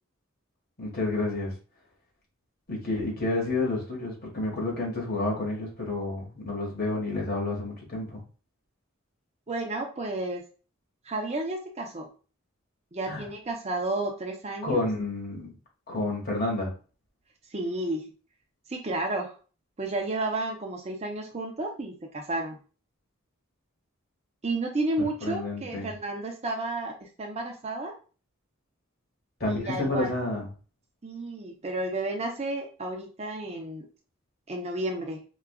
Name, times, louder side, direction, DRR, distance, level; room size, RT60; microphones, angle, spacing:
voice 1, 0.8-1.5 2.7-8.2 13.1-13.2 14.6-15.5 15.9-16.7 25.2-25.9 29.4-30.5, left 2 dB, 45° left, 1.3 m, -30 dB
voice 2, 9.5-10.5 11.1-12.1 12.9-14.8 17.5-18.1 18.7-19.4 19.8-22.6 24.4-27.9 29.5-30.1 31.0-33.9 34.5-35.2, right 2 dB, 30° right, 0.6 m, -32 dB
4.6 x 2.3 x 2.2 m
head